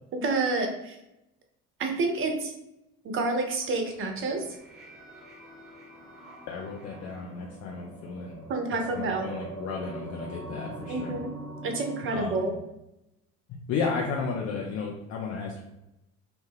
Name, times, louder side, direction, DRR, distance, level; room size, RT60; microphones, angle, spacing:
voice 1, 0.1-1.0 1.8-2.5 3.0-4.6 8.5-9.3 10.9-11.3 11.6-12.5, right 3 dB, 30° right, 3 dB, 0.5 m, -29 dB
sound 1, 3.6-12.1, right 1 dB, ahead, 0.9 m, -43 dB
voice 2, 6.5-8.4 8.9-11.2 12.1-12.5 13.5-15.6, left 5 dB, 40° left, -1 dB, 0.4 m, -33 dB
2.1 x 2.1 x 3.1 m, 0.89 s
figure-of-eight pair, 55°, 43 cm